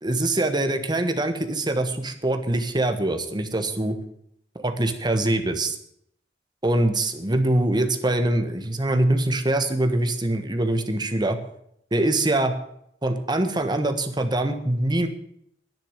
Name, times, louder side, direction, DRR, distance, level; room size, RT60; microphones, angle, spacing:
voice 1, 0.0-4.0 4.6-5.8 6.6-11.4 11.9-12.5 13.0-15.1, right 1 dB, 25° right, 7 dB, 1.4 m, -23 dB
10.5 x 9.9 x 9.0 m, 0.72 s
head